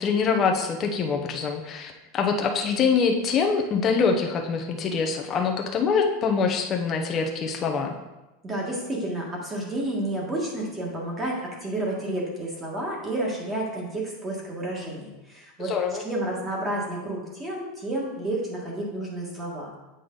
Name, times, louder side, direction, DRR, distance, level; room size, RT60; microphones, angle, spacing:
voice 1, 0.0-7.9 15.6-16.0, left 5 dB, 25° left, 3 dB, 0.8 m, -24 dB
voice 2, 8.4-15.7 16.0-19.7, right 1 dB, 15° right, -2 dB, 1.7 m, -30 dB
8.0 x 5.2 x 3.9 m, 1.0 s
supercardioid pair, 155°, 0 cm